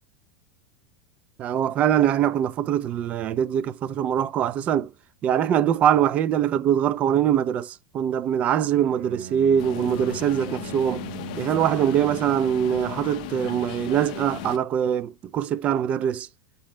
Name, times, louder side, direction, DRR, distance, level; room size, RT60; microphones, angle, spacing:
voice 1, 1.4-4.9 5.2-11.0 11.4-16.3, right 9 dB, 30° right, 0.3 m, -23 dB
Bowed string instrument, 8.7-12.8, right 8 dB, 65° right, 0.7 m, -40 dB
sound 1, 9.6-14.6, left 14 dB, 60° left, 0.5 m, -36 dB
5.4 x 2.0 x 3.2 m
supercardioid pair, 135°, 4 cm